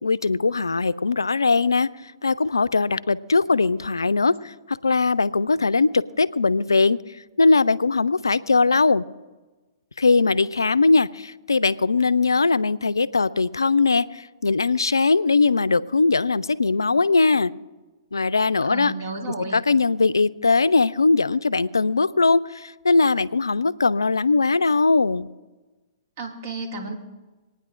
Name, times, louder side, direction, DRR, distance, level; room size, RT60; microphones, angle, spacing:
voice 1, 0.0-1.9 2.2-7.0 7.4-9.0 10.0-17.5 18.1-18.9 19.5-25.3, left 3 dB, 85° left, 17 dB, 0.4 m, -20 dB
voice 2, 18.6-19.6 26.2-27.0, right 3 dB, 50° right, 2 dB, 2.1 m, -32 dB
26.5 x 9.5 x 2.5 m, 1.2 s
figure-of-eight pair, 115°, 2 cm